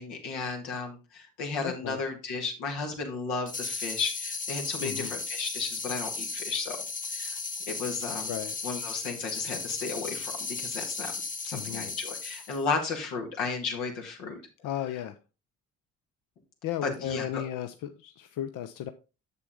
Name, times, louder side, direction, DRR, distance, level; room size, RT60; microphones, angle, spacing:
voice 1, 0.0-6.8 7.1-7.4 7.7-8.3 8.6-11.1 11.4-14.4 16.8-17.4, left 4 dB, 80° left, 1.9 m, -34 dB
voice 2, 1.6-2.0 4.8-5.2 8.3-8.6 11.5-11.9 14.6-15.2 16.6-18.9, left 11 dB, 55° left, 0.6 m, -35 dB
sound 1, 3.5-12.6, left 4 dB, 20° left, 0.9 m, -36 dB
7.0 x 6.7 x 3.5 m
hypercardioid pair, 50°, 38 cm